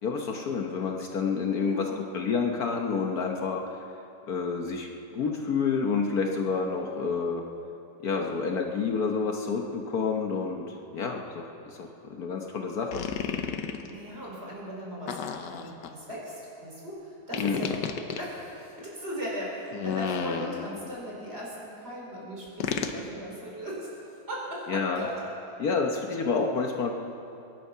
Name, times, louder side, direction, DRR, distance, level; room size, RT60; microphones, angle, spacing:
voice 1, 0.0-3.6 4.3-7.4 8.0-13.1 17.4-17.6 24.7-25.0 25.6-26.9, left 5 dB, 65° left, 2 dB, 1.5 m, -29 dB
voice 2, 1.6-2.1 6.3-6.5 11.0-11.1 13.9-15.2 15.5-17.8 18.2-24.0 24.3-25.2 25.9-26.1, equal, 35° right, -4 dB, 4.7 m, -38 dB
sound 1, 12.9-13.9 15.1-15.9 17.3-18.2 19.7-20.9 22.6-23.0, left 7 dB, 80° left, 1.5 m, -32 dB
23.0 x 11.0 x 5.6 m, 2.7 s
omnidirectional pair, 1.8 m